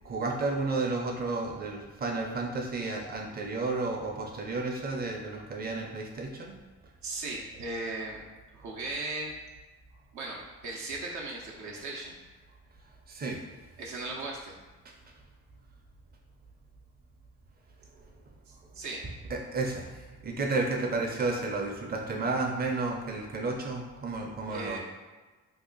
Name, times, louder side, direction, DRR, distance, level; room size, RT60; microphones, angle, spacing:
voice 1, 0.0-6.6 13.1-13.4 14.8-14.9 18.7-18.8 19.3-19.9 20.2-24.8, right 3 dB, 30° right, 1 dB, 0.6 m, -32 dB
voice 2, 7.0-8.2 8.5-9.3 10.1-12.1 13.8-14.5 18.5-19.0 24.5-24.8, right 2 dB, 70° right, -3 dB, 0.7 m, -37 dB
2.7 x 2.4 x 3.8 m, 1.3 s
cardioid pair, 90°, 30 cm